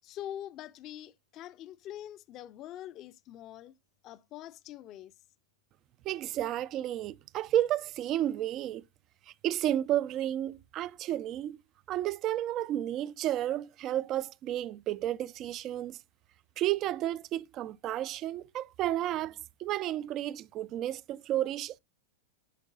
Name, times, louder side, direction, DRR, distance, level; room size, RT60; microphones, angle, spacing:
voice 1, 0.0-3.7 4.0-5.1, left 11 dB, 40° left, 0.5 m, -44 dB
voice 2, 6.0-8.8 9.4-11.6 11.9-16.0 16.6-21.8, right 12 dB, 40° right, 0.4 m, -32 dB
10.0 x 5.2 x 2.3 m
figure-of-eight pair, 95°, 0 cm